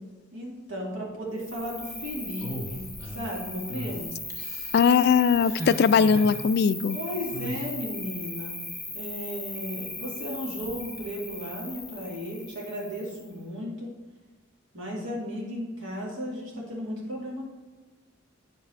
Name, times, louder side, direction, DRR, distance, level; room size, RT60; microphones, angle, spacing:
voice 1, 0.3-4.1 6.9-8.6 8.9-13.9 14.7-17.5, equal, 75° right, -4 dB, 2.3 m, -35 dB
Cricket, 1.4-13.3, left 2 dB, ahead, 1.3 m, -38 dB
sound 1, 2.4-3.3 3.7-3.9 4.3-4.8 5.4-6.4 7.3-7.7, equal, 20° right, 0.9 m, -37 dB
voice 2, 4.7-7.0, left 6 dB, 55° left, 15 dB, 0.3 m, -20 dB
8.2 x 5.9 x 4.4 m, 1.3 s
head